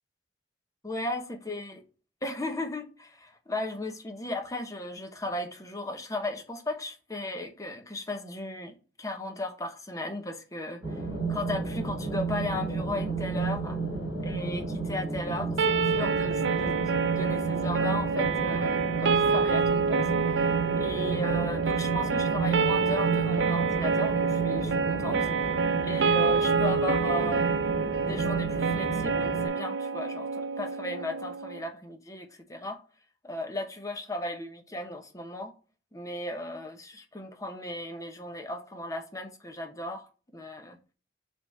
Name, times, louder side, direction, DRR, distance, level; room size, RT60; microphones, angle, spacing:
voice 1, 0.8-1.8 2.2-11.0 11.3-13.8 14.2-20.5 20.8-25.3 25.8-27.5 28.1-32.8 33.2-35.5 35.9-40.8, left 1 dB, 20° left, 1.0 m, -36 dB
sound 1, 10.8-29.5, right 4 dB, 15° right, 3.3 m, -32 dB
sound 2, 15.6-31.6, right 5 dB, 85° right, 0.5 m, -27 dB
6.0 x 3.6 x 5.3 m
head